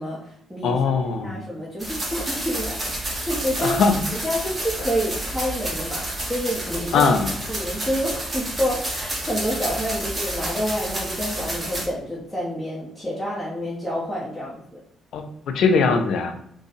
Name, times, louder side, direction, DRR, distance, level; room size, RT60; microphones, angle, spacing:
voice 1, 0.0-0.8 1.2-7.1 7.5-14.8, equal, 5° left, -6 dB, 1.1 m, -28 dB
voice 2, 0.6-1.4 3.6-3.9 6.9-7.3 15.1-16.3, left 5 dB, 75° left, 6 dB, 0.6 m, -20 dB
sound 1, 1.8-11.9, right 1 dB, 20° right, 1.6 m, -30 dB
4.0 x 2.4 x 4.0 m, 0.71 s
cardioid pair, 90°, 0 cm